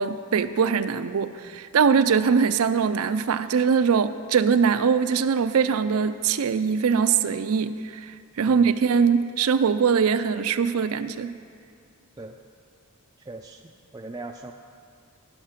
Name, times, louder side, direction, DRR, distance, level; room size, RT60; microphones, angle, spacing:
voice 1, 0.0-11.3, right 6 dB, 75° right, 12 dB, 0.4 m, -22 dB
voice 2, 13.3-13.6 13.9-14.5, right 2 dB, 15° right, 2 dB, 0.3 m, -39 dB
15.5 x 5.8 x 5.8 m, 2.2 s
head